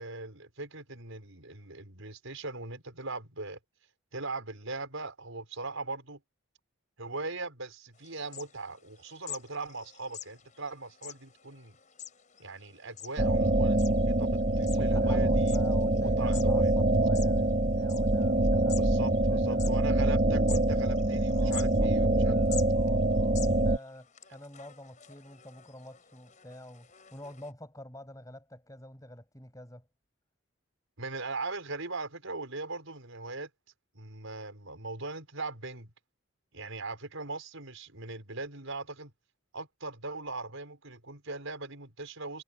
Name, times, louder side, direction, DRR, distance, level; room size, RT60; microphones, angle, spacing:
voice 1, 0.0-3.6 4.1-6.2 7.0-11.8 12.4-15.6 16.0-16.7 18.6-22.4 31.0-33.5 34.0-35.9 36.5-39.1 39.5-42.4, right 3 dB, 70° right, 5.2 m, -40 dB
sound 1, 8.0-27.5, left 10 dB, 35° left, 5.8 m, -48 dB
sound 2, 13.2-23.8, right 1 dB, 35° right, 1.0 m, -25 dB
voice 2, 14.7-19.7 21.3-29.9, left 1 dB, 15° left, 7.9 m, -47 dB
head